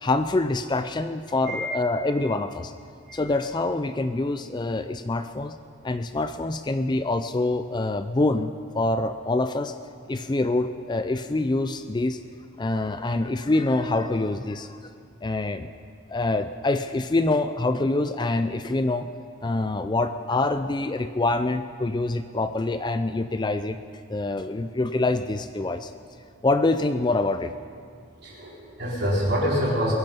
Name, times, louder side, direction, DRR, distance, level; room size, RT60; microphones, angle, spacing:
voice 1, 0.0-2.7 3.1-5.6 5.8-9.7 10.1-12.2 12.6-14.8 15.2-15.7 16.1-19.1 19.4-23.8 24.1-25.9 26.4-27.5, left 2 dB, 20° left, 10 dB, 0.4 m, -25 dB
voice 2, 28.2-29.9, equal, 50° right, -5 dB, 4.3 m, -26 dB
22.5 x 11.0 x 5.4 m, 2.5 s
head